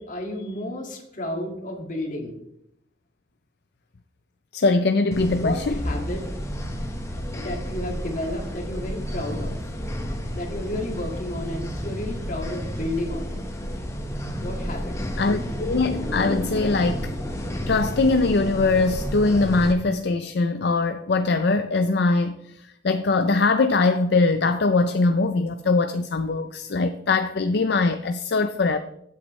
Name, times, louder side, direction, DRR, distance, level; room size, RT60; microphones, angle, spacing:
voice 1, 0.0-2.3 5.4-6.2 7.3-9.6 10.3-13.4 14.4-14.9, left 1 dB, 45° left, 2.0 m, -31 dB
voice 2, 4.5-5.8 15.2-17.1 17.7-22.4 22.8-28.8, left 3 dB, 60° left, 0.5 m, -22 dB
sound 1, 5.1-19.7, equal, 15° left, 1.1 m, -31 dB
15.0 x 8.2 x 3.2 m
head